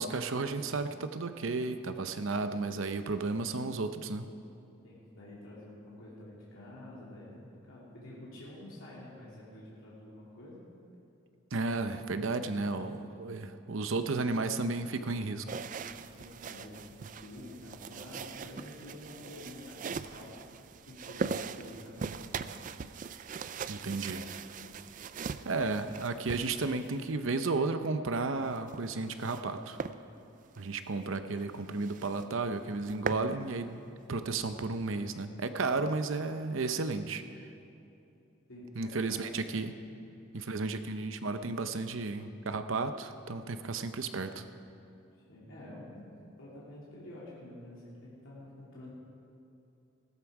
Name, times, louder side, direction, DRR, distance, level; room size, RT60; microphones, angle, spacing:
voice 1, 0.0-4.3 11.5-15.5 23.7-24.2 25.4-29.8 30.6-33.8 34.1-37.2 38.8-39.8 40.3-44.4, right 3 dB, 70° right, 9 dB, 0.7 m, -33 dB
voice 2, 4.8-10.6 16.1-20.3 20.9-22.6 38.5-39.6 45.1-48.9, left 1 dB, 75° left, -7 dB, 2.8 m, -49 dB
sound 1, 15.5-27.1 28.4-29.5 29.8-30.0 30.4-30.6 31.0-31.1 31.4-31.5 31.8-32.3 32.6-33.3, right 5 dB, 40° right, 0.3 m, -40 dB
15.5 x 13.5 x 4.8 m, 2.8 s
head